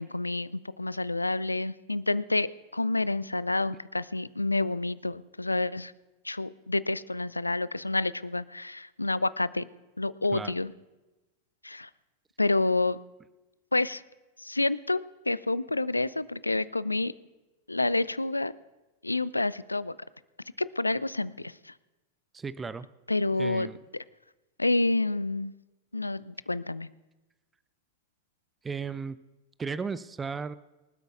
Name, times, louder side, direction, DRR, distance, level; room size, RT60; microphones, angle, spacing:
voice 1, 0.0-5.9 6.2-9.7 10.0-10.7 11.6-11.9 12.4-13.0 13.7-14.0 14.4-15.0 15.3-17.1 17.7-18.5 19.0-20.0 20.6-21.8 23.1-23.7 24.6-25.5 25.9-26.9, left 2 dB, 85° left, 19 dB, 0.4 m, -28 dB
voice 2, 22.3-22.9 23.4-23.8 28.6-29.2 29.6-30.5, right 5 dB, 15° right, 15 dB, 0.4 m, -35 dB
25.0 x 12.5 x 2.4 m, 1.1 s
figure-of-eight pair, 90°, 0 cm